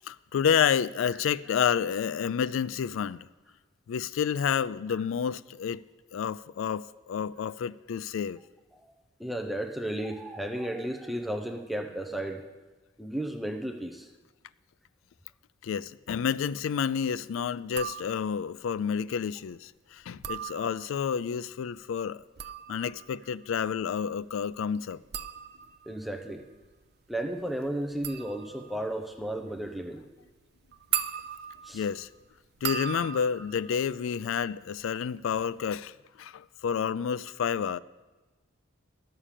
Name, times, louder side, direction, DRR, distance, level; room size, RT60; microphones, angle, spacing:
voice 1, 0.1-3.3 3.9-5.8 6.1-8.4 15.6-22.2 22.7-25.0 31.7-32.1 32.6-37.8, left 7 dB, 75° left, 0.3 m, -29 dB
voice 2, 9.2-12.4 13.0-14.1 25.9-26.4 27.1-30.0 31.6-31.8, right 1 dB, ahead, 0.6 m, -34 dB
sound 1, 17.7-18.5 20.0-21.1 22.1-34.8 35.1-35.6, right 10 dB, 50° right, 0.5 m, -39 dB
11.0 x 6.6 x 7.4 m
head